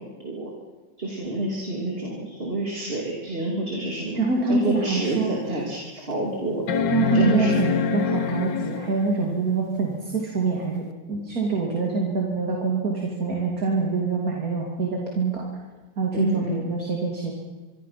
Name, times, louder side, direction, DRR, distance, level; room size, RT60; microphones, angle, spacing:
voice 1, 1.0-4.2 4.5-6.6 7.1-7.5 9.2-9.3 16.1-16.7, right 2 dB, 30° right, -2 dB, 3.1 m, -27 dB
voice 2, 4.1-5.6 6.9-15.4 16.0-17.3, right 4 dB, 50° right, -1 dB, 3.2 m, -25 dB
sound 1, 4.5-4.6 5.2-5.3 6.7-9.2 10.9-11.0, left 5 dB, 75° left, 1.9 m, -25 dB
25.5 x 24.0 x 5.9 m, 1.3 s
omnidirectional pair, 2.0 m